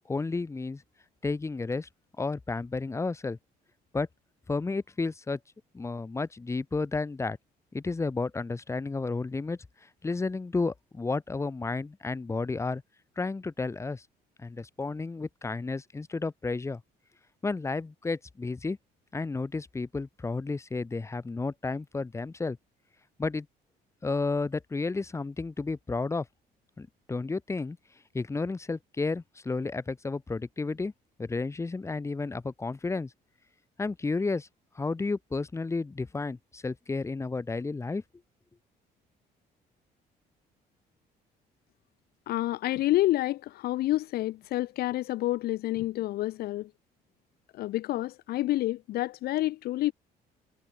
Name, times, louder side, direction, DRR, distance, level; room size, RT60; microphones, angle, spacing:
voice 1, 0.1-0.8 1.2-1.9 2.2-3.4 3.9-4.1 4.5-5.4 5.7-7.4 7.7-9.6 10.0-12.8 13.2-14.0 14.4-16.8 17.4-18.8 19.1-22.6 23.2-23.5 24.0-26.2 26.8-27.8 28.1-30.9 31.2-33.1 33.8-34.5 34.7-38.0, left 3 dB, 15° left, 1.2 m, -32 dB
voice 2, 42.3-46.7 47.6-49.9, left 16 dB, 65° left, 0.6 m, -28 dB
cardioid pair, 110°, 17 cm